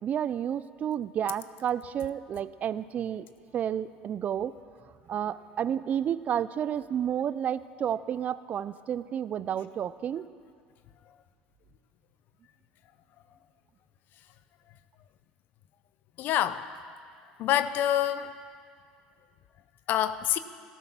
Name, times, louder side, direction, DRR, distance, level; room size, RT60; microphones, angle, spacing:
voice 1, 0.0-3.3 3.5-4.6 5.1-10.3, right 9 dB, 45° right, 16 dB, 0.5 m, -31 dB
voice 2, 16.2-16.7 17.4-18.3 19.9-20.4, left 11 dB, 60° left, 13 dB, 0.6 m, -26 dB
13.5 x 13.5 x 6.0 m, 2.2 s
supercardioid pair, 85°, 4 cm